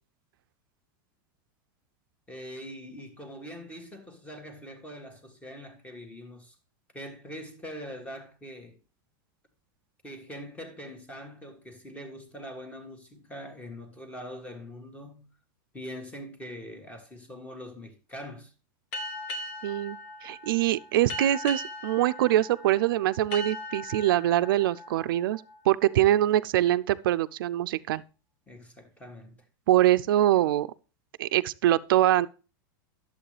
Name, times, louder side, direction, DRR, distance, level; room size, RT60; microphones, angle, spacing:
voice 1, 2.3-6.6 6.9-8.8 10.0-15.3 15.7-18.5 28.5-29.4, equal, 10° left, 1.7 m, -43 dB
sound 1, 18.9-26.2, left 1 dB, 55° left, 1.6 m, -39 dB
voice 2, 19.6-28.0 29.7-30.7 31.2-32.3, right 13 dB, 85° right, 0.4 m, -24 dB
11.0 x 7.6 x 3.2 m
supercardioid pair, 140°, 11 cm